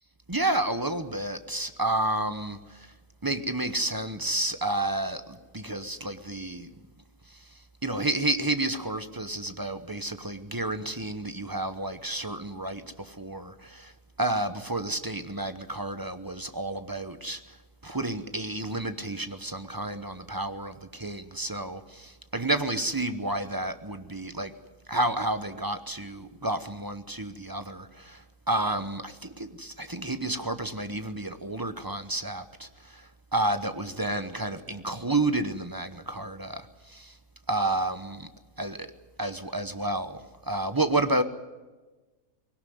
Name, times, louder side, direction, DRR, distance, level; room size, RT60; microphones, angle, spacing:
voice 1, 0.3-2.9 3.2-6.7 7.8-13.9 14.2-17.6 17.8-24.5 24.9-37.1 37.5-38.3 38.6-38.9 39.2-41.2, right 2 dB, 20° right, 9 dB, 0.7 m, -30 dB
20.5 x 17.5 x 9.4 m, 1.2 s
omnidirectional pair, 1.7 m